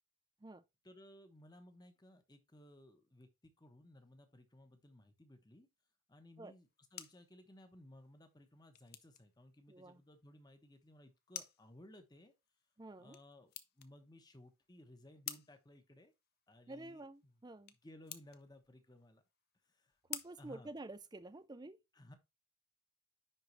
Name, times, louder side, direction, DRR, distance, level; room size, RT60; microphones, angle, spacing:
voice 1, 0.8-5.7 6.1-12.3 13.0-16.1 16.5-17.4 17.8-19.2 19.7-19.9 20.4-20.7 21.9-22.1, left 1 dB, 20° left, 0.9 m, -59 dB
sound 1, 6.5-21.5, left 11 dB, 45° left, 0.6 m, -54 dB
voice 2, 9.7-10.0 12.8-13.2 16.7-17.7 20.1-21.8, right 2 dB, 20° right, 0.4 m, -50 dB
10.0 x 3.7 x 3.1 m
head